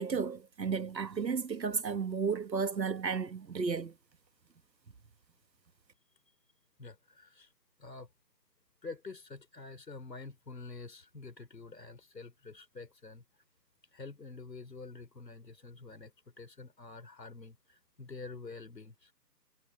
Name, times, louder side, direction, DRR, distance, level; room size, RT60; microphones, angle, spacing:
voice 1, 0.0-3.9, right 5 dB, 80° right, 1.6 m, -33 dB
voice 2, 6.8-7.5 7.8-8.1 8.8-13.2 13.9-19.1, left 3 dB, 75° left, 3.5 m, -47 dB
figure-of-eight pair, 175°, 50 cm